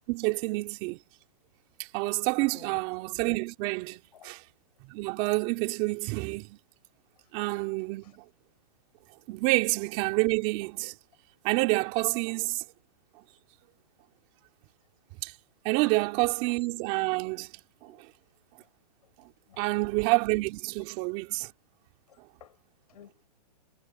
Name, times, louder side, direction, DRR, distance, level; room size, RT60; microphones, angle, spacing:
voice 1, 0.1-1.0 1.9-4.4 4.9-6.6 7.3-8.2 9.3-10.9 11.4-12.6 15.2-15.3 15.6-17.5 17.8-18.0 19.6-21.5, right 24 dB, 30° right, 3.3 m, -28 dB
voice 2, 19.5-19.8 22.1-22.6 22.9-23.3, left 10 dB, 65° left, 6.9 m, -54 dB
hypercardioid pair, 155°, 21 cm